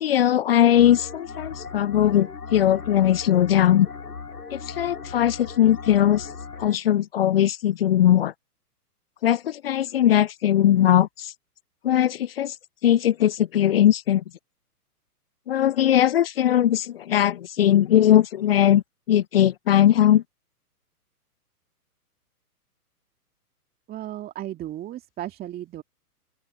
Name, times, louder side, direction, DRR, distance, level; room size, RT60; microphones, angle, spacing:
voice 1, 0.0-3.9 4.5-6.3 6.6-8.3 9.2-11.3 11.8-12.5 12.8-14.2 15.5-20.2, left 11 dB, 40° left, 0.4 m, -20 dB
sound 1, 0.7-6.8, left 4 dB, 85° left, 6.0 m, -38 dB
voice 2, 23.9-25.8, right 13 dB, 20° right, 2.2 m, -35 dB
open air
figure-of-eight pair, 120°, 46 cm